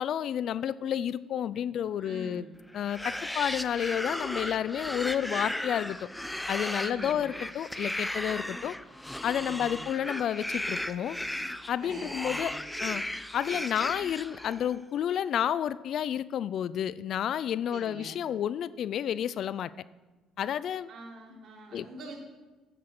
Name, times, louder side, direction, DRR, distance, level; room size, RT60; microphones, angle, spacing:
voice 1, 0.0-2.4 2.7-6.0 6.5-8.8 9.2-11.2 11.7-12.5 12.8-13.0 13.3-19.7 20.4-20.9 21.7-21.9, left 9 dB, 60° left, 18 dB, 0.4 m, -30 dB
voice 2, 2.0-2.5 6.8-7.3 9.3-9.8 11.8-12.6 17.7-18.2 20.9-22.2, right 2 dB, 60° right, -1 dB, 3.3 m, -45 dB
sound 1, 2.8-14.8, left 1 dB, 5° left, 0.7 m, -36 dB
9.9 x 8.4 x 6.0 m, 1.2 s
supercardioid pair, 70°, 0 cm